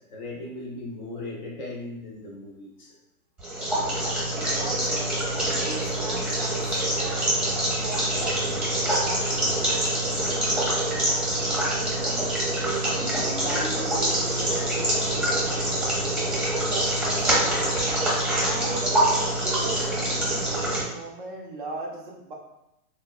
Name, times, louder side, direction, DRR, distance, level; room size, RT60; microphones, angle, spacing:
voice 1, 0.0-2.9, left 2 dB, 35° left, -1 dB, 0.5 m, -37 dB
sound 1, 3.4-20.8, right 1 dB, 5° right, 0.8 m, -25 dB
voice 2, 3.8-4.3 4.6-7.4 7.8-11.3 11.7-12.3 12.6-16.0 16.4-17.8 18.1-22.3, right 3 dB, 35° right, -2 dB, 0.5 m, -39 dB
sound 2, 12.6-18.0, left 2 dB, 85° left, 0.7 m, -42 dB
3.8 x 2.1 x 2.2 m, 0.87 s
hypercardioid pair, 130°, 45 cm